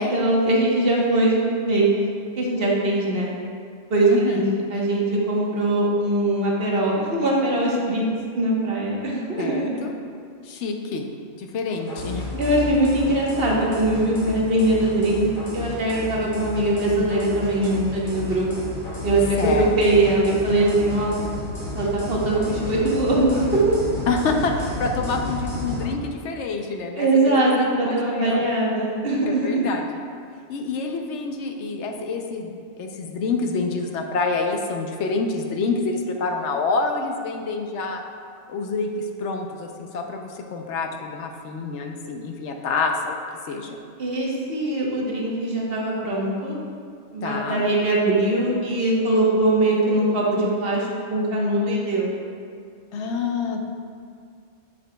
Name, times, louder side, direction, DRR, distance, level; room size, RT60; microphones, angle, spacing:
voice 1, 0.0-1.3 1.7-2.0 2.4-3.3 3.9-4.4 4.7-8.1 8.3-9.7 12.4-15.3 15.5-18.5 19.0-21.2 21.7-24.0 27.0-29.7 44.0-46.6 47.1-52.1, right 2 dB, 55° right, -3 dB, 1.2 m, -21 dB
voice 2, 4.1-4.4 9.4-9.9 10.4-11.1 11.3-12.3 19.4-19.7 24.1-27.5 27.8-28.4 29.2-29.8 30.5-38.0 38.5-43.2 43.5-43.8 47.2-47.6 52.9-53.7, left 4 dB, 75° left, 3 dB, 0.9 m, -27 dB
sound 1, 11.8-25.9, left 2 dB, 45° left, 1.7 m, -32 dB
7.9 x 7.0 x 2.2 m, 2.2 s
omnidirectional pair, 1.2 m